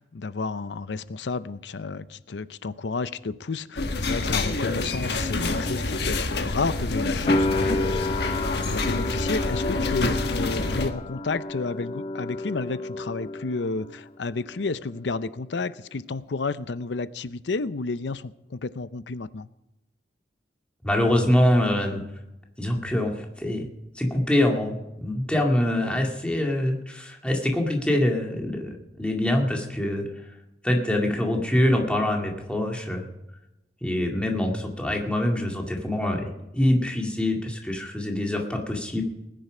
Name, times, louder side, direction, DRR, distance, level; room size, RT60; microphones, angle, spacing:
voice 1, 0.0-19.5, left 3 dB, 85° left, 15 dB, 0.6 m, -31 dB
sound 1, 3.8-10.9, left 2 dB, 65° left, 1.4 m, -27 dB
sound 2, 7.3-14.1 14.3-15.2, left 2 dB, 30° left, 0.5 m, -30 dB
voice 2, 20.8-22.0 22.6-23.7 24.0-30.1 30.6-33.0 33.8-36.2 36.5-39.0, left 1 dB, 5° left, 1 dB, 2.0 m, -24 dB
19.5 x 10.0 x 5.0 m, 0.94 s
head